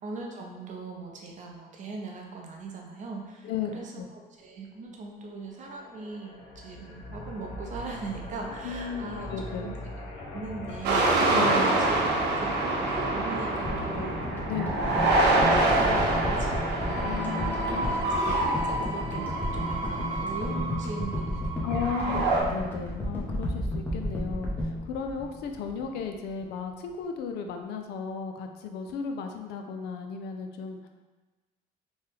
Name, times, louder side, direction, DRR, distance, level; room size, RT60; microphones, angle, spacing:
voice 1, 0.0-9.8 10.2-14.2 14.7-15.1 15.4-21.7 22.0-22.2, right 3 dB, 45° right, 0 dB, 0.6 m, -40 dB
voice 2, 3.4-4.1 8.6-9.8 11.3-11.8 14.5-14.8 17.0-18.1 21.6-30.9, left 6 dB, 75° left, 5 dB, 0.4 m, -35 dB
sound 1, 5.5-17.1, left 2 dB, 90° left, 0.8 m, -40 dB
sound 2, 10.8-22.4, right 2 dB, 85° right, 0.6 m, -26 dB
sound 3, 13.6-26.0 26.3-26.4, left 1 dB, 10° left, 0.7 m, -33 dB
3.1 x 2.2 x 3.3 m, 1.2 s
cardioid pair, 110°, 17 cm